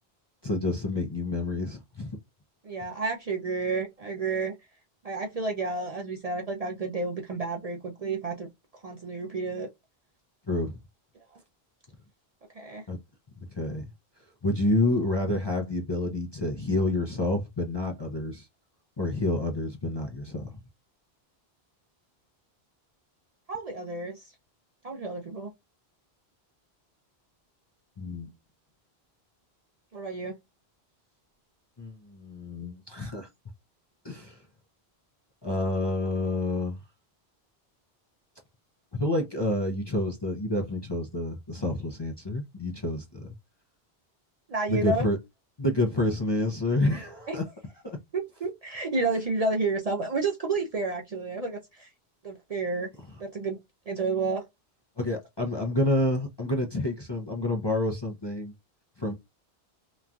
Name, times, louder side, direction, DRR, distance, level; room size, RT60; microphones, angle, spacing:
voice 1, 0.4-2.1 10.5-10.8 12.9-13.0 13.5-13.9 14.4-18.5 19.0-20.6 28.0-28.3 31.8-33.3 34.0-34.4 35.4-36.8 38.9-43.3 44.7-45.2 45.6-47.4 47.8-48.0 55.0-58.5 59.0-59.1, left 2 dB, 35° left, 0.4 m, -28 dB
voice 2, 2.6-4.6 5.0-9.7 12.5-12.9 23.5-24.3 24.8-25.5 29.9-30.3 44.5-45.1 47.3-47.4 48.1-51.9 52.2-52.9 53.2-53.6 53.9-54.4, right 3 dB, 50° right, 0.5 m, -31 dB
3.0 x 2.2 x 2.5 m
omnidirectional pair, 1.1 m